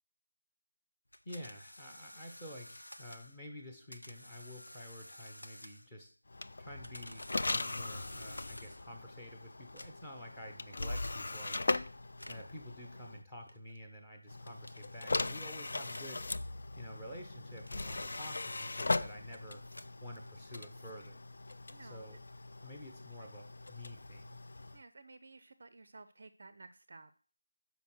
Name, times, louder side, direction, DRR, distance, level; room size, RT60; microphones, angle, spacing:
sound 1, 1.1-3.4 3.9-6.0 6.6-9.0 9.6-10.2 11.0-11.2 12.1-12.6 13.5-13.8 14.6-15.0 15.8-16.2 17.0-18.7 19.5-20.5, left 1 dB, 70° left, 0.8 m, -53 dB
voice 1, 1.2-6.1 6.6-11.6 12.3-16.3 16.8-19.6 20.0-21.2 21.8-22.2 22.6-24.4, equal, 10° left, 3 dB, 1.1 m, -49 dB
sound 2, 6.3-13.2 14.3-24.8, left 2 dB, 45° left, 0.4 m, -40 dB
voice 2, 21.7-22.1 24.7-27.1, right 3 dB, 40° right, 12 dB, 0.5 m, -54 dB
6.2 x 5.2 x 6.1 m, 0.42 s
figure-of-eight pair, 165°, 0 cm